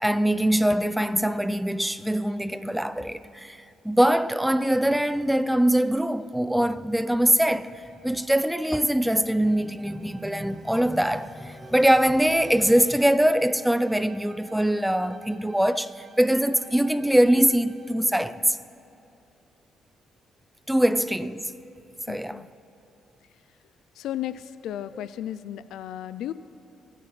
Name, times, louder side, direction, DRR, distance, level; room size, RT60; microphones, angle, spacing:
voice 1, 0.0-18.6 20.7-21.5 22.1-22.4, right 1 dB, 5° right, 0.4 m, -23 dB
Bowed string instrument, 7.6-18.1, right 4 dB, 40° right, 0.9 m, -52 dB
voice 2, 22.1-22.5 23.9-26.3, left 11 dB, 80° left, 0.3 m, -34 dB
24.5 x 10.0 x 3.2 m
cardioid pair, 90°, 0 cm